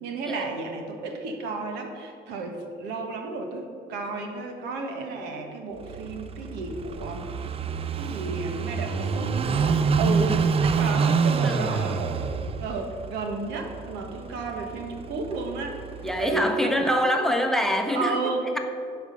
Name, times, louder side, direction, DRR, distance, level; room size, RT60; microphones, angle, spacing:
voice 1, 0.0-7.3 8.0-15.8 16.2-17.0 17.9-18.5, right 3 dB, 85° right, 3 dB, 1.4 m, -32 dB
Car passing by / Idling, 5.8-16.5, right 5 dB, 35° right, 0.5 m, -27 dB
voice 2, 11.4-11.8 16.0-18.2, equal, ahead, 4 dB, 0.8 m, -25 dB
10.5 x 4.9 x 6.7 m, 2.4 s
cardioid pair, 110°, 17 cm